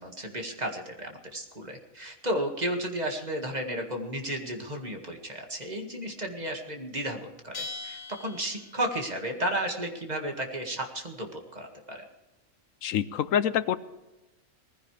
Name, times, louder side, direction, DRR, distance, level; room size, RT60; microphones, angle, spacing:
voice 1, 0.0-12.0, right 1 dB, 30° right, 3 dB, 2.0 m, -33 dB
Bell, 7.5-9.1, left 3 dB, 60° left, 2.4 m, -41 dB
voice 2, 12.8-13.8, left 9 dB, 80° left, 14 dB, 1.1 m, -26 dB
20.0 x 15.5 x 3.3 m, 1.0 s
omnidirectional pair, 1.4 m